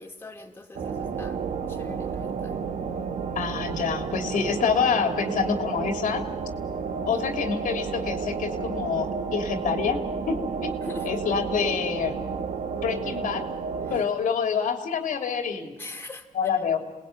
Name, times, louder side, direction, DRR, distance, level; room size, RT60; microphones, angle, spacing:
voice 1, 0.0-1.4 1.7-2.6 7.1-7.2 10.8-11.1 15.8-16.3, left 2 dB, 15° left, 2 dB, 2.7 m, -41 dB
sound 1, 0.7-14.0, right 5 dB, 70° right, 1.7 m, -31 dB
voice 2, 3.3-6.2 7.0-10.8 11.0-12.2 12.7-13.5 13.9-15.7 16.3-16.8, left 6 dB, 90° left, 5 dB, 3.1 m, -27 dB
28.0 x 19.5 x 9.5 m, 1.1 s
cardioid pair, 110°, 13 cm